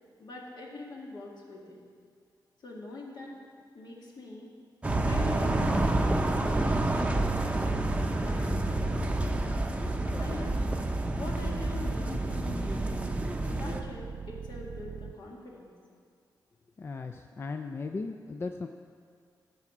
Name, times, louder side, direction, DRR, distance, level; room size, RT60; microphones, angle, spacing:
voice 1, 0.2-1.8 2.6-3.4 3.7-4.5 5.0-6.1 6.5-9.7 10.0-10.6 11.2-13.2 13.5-15.7, left 2 dB, 70° left, -2 dB, 2.0 m, -44 dB
sound 1, 4.8-13.8, right 1 dB, 15° right, 0.6 m, -28 dB
sound 2, 8.0-15.1, right 6 dB, 85° right, 0.4 m, -41 dB
voice 2, 16.8-18.7, left 4 dB, 35° left, 6 dB, 0.4 m, -37 dB
13.5 x 4.9 x 7.2 m, 2.1 s
wide cardioid pair, 140°, 8 cm